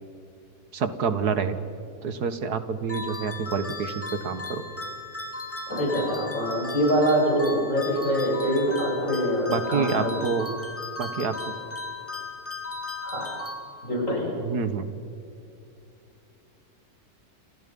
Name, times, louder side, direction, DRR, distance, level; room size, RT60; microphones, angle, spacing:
voice 1, 0.7-1.6 2.0-4.7 9.5-10.5 11.0-11.5 14.4-14.9, right 5 dB, 85° right, 11 dB, 2.0 m, -28 dB
sound 1, 2.9-14.1, left 3 dB, 10° left, 2.9 m, -36 dB
voice 2, 5.7-10.3 13.0-13.3 13.8-14.3, equal, 55° left, -2 dB, 7.6 m, -25 dB
29.5 x 28.5 x 5.5 m, 2.5 s
omnidirectional pair, 1.6 m